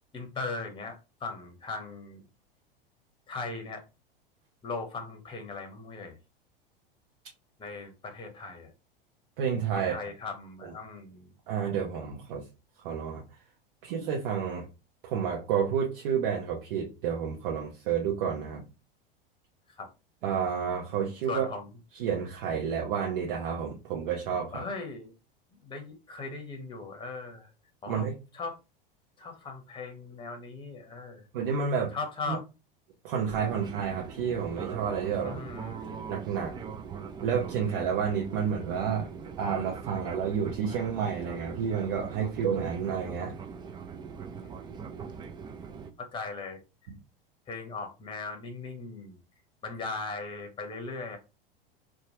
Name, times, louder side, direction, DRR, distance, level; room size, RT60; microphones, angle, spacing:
voice 1, 0.1-2.2 3.3-3.8 4.6-6.1 7.6-8.7 9.8-11.3 19.8-19.9 21.3-21.6 24.5-25.1 25.6-27.5 27.8-28.1 28.3-28.6 29.2-31.2 31.9-32.4 35.2-35.9 46.0-46.6 47.5-49.2 49.6-51.2, left 3 dB, 15° left, 0.8 m, -38 dB
voice 2, 9.4-9.9 10.6-10.7 11.5-12.4 12.8-13.2 13.8-14.7 15.0-18.7 20.2-21.5 21.9-24.6 27.9-28.2 31.3-32.0 32.3-32.4 33.0-35.4 36.1-36.5 37.2-39.1 39.4-43.4 46.9-47.0, right 7 dB, 60° right, 0.8 m, -30 dB
Fixed-wing aircraft airplane, 33.3-45.9, right 6 dB, 15° right, 0.4 m, -41 dB
2.9 x 2.3 x 2.8 m
hypercardioid pair, 85°, 29 cm